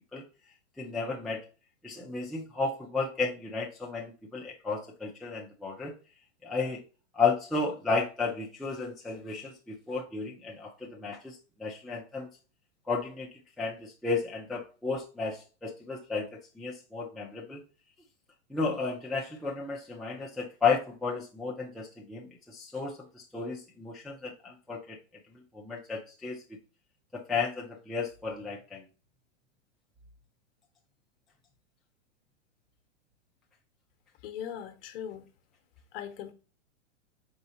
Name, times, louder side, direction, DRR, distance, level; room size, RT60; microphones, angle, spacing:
voice 1, 0.8-1.4 1.8-5.9 6.4-6.8 7.1-12.3 12.9-13.3 13.6-17.6 18.5-25.0 25.3-26.4 27.1-28.8, left 4 dB, ahead, 0.4 m, -33 dB
voice 2, 34.2-35.2 35.9-36.3, left 9 dB, 50° left, 1.0 m, -39 dB
4.4 x 4.0 x 2.7 m
hypercardioid pair, 120°, 36 cm